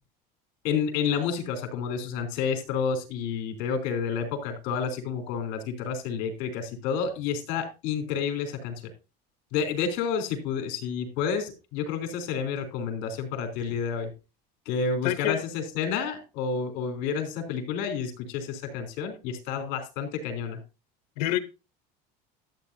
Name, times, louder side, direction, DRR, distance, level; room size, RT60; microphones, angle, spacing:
voice 1, 0.6-8.7 9.5-14.1 14.7-20.6, left 6 dB, 65° left, 3.4 m, -30 dB
voice 2, 15.0-15.4 21.2-21.4, left 14 dB, 85° left, 0.9 m, -26 dB
13.0 x 8.7 x 2.7 m
supercardioid pair, 135°, 21 cm